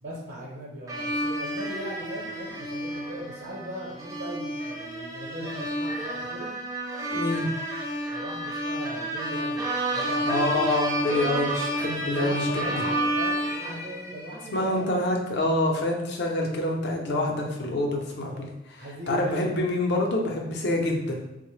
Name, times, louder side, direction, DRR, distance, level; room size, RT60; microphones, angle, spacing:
voice 1, 0.0-6.5 8.1-10.8 11.9-14.9 17.9-18.4 18.7-19.7, right 1 dB, 70° right, -4 dB, 0.8 m, -39 dB
sound 1, 0.9-14.6, right 1 dB, 20° right, 0.5 m, -30 dB
voice 2, 7.1-7.5 10.2-12.6 14.5-18.5 19.1-21.2, left 1 dB, 55° left, 0 dB, 0.6 m, -26 dB
3.7 x 2.1 x 3.1 m, 0.92 s
head